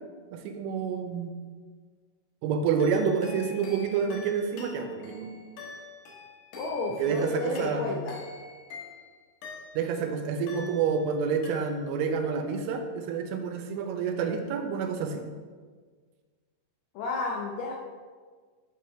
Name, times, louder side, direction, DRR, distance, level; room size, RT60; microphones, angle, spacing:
voice 1, 0.3-1.3 2.4-5.4 7.0-7.9 9.7-15.3, right 6 dB, 80° right, 5 dB, 3.2 m, -28 dB
sound 1, 2.8-10.0 10.5-11.2 11.4-12.1, left 3 dB, 65° left, 3.3 m, -45 dB
voice 2, 6.6-8.1 17.0-17.7, left 3 dB, 85° left, -1 dB, 2.3 m, -31 dB
8.6 x 4.7 x 5.7 m, 1.5 s
omnidirectional pair, 5.7 m